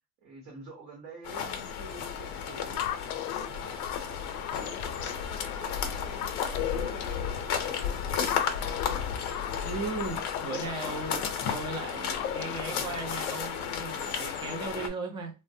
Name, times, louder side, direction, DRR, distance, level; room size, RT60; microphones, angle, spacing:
voice 1, 0.2-2.9 3.3-9.0, right 2 dB, 40° right, 1.0 m, -49 dB
sound 1, 1.2-14.9, left 7 dB, 45° left, 0.7 m, -33 dB
sound 2, 2.8-13.8, left 11 dB, 90° left, 0.5 m, -38 dB
voice 2, 9.6-15.4, right 3 dB, 10° right, 0.4 m, -37 dB
3.1 x 2.1 x 2.6 m
supercardioid pair, 150°, 43 cm